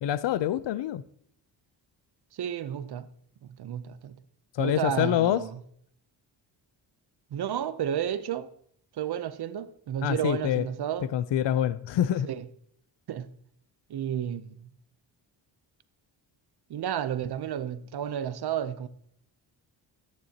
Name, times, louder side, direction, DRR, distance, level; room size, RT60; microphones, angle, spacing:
voice 1, 0.0-1.0 4.5-5.4 10.0-10.7 11.1-12.3, left 11 dB, 70° left, 0.6 m, -26 dB
voice 2, 2.3-3.1 3.6-4.2 4.6-5.6 7.3-8.5 9.0-11.1 12.3-12.5 13.1-13.3 13.9-14.7 16.7-18.9, right 9 dB, 60° right, 0.8 m, -32 dB
14.0 x 9.5 x 2.9 m
cardioid pair, 100°, 45 cm